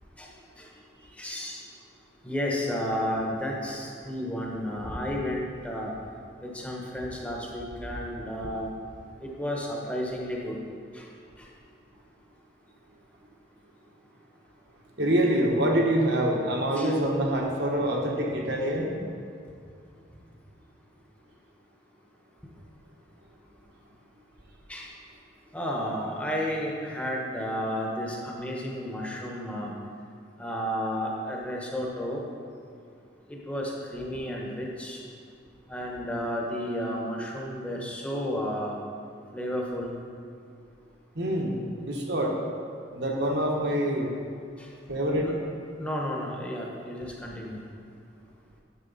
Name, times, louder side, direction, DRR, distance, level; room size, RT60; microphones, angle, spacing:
voice 1, 0.2-0.7 1.2-1.6 2.2-5.9 6.4-8.7 9.2-10.6 10.9-11.1 11.4-11.5 16.7-16.9 24.7-24.9 25.5-29.7 30.4-32.2 33.3-35.0 35.7-38.8 39.3-39.9 44.6-44.7 45.2-45.3 45.8-47.6, equal, 5° left, -2 dB, 1.1 m, -32 dB
voice 2, 15.0-18.9 41.1-42.4 42.9-44.1 44.9-45.3, right 1 dB, 60° right, -1 dB, 1.3 m, -25 dB
9.9 x 6.8 x 4.1 m, 2.3 s
head